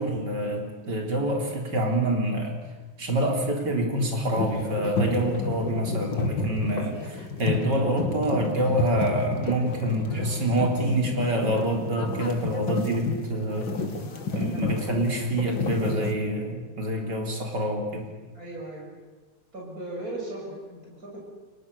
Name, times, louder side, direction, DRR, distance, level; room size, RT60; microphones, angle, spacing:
voice 1, 0.0-2.6 3.0-13.7 14.3-18.1, right 1 dB, 65° right, 2 dB, 4.3 m, -26 dB
sound 1, 4.2-16.1, left 3 dB, 85° left, 3.0 m, -31 dB
voice 2, 18.3-18.9 19.5-21.2, right 2 dB, 50° right, -3 dB, 7.5 m, -37 dB
30.0 x 22.5 x 6.9 m, 1.3 s
omnidirectional pair, 2.0 m